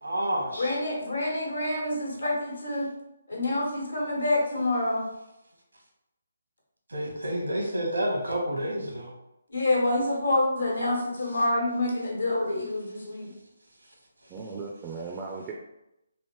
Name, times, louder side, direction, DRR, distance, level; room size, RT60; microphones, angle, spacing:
voice 1, 0.0-0.8 6.9-9.1, right 1 dB, 80° right, 0 dB, 1.0 m, -29 dB
voice 2, 0.6-2.9 3.3-5.0 9.5-13.3, left 2 dB, 75° left, -2 dB, 1.3 m, -27 dB
voice 3, 14.3-15.5, right 4 dB, 20° right, -1 dB, 0.4 m, -37 dB
3.4 x 2.5 x 3.0 m, 0.89 s
figure-of-eight pair, 145°, 0 cm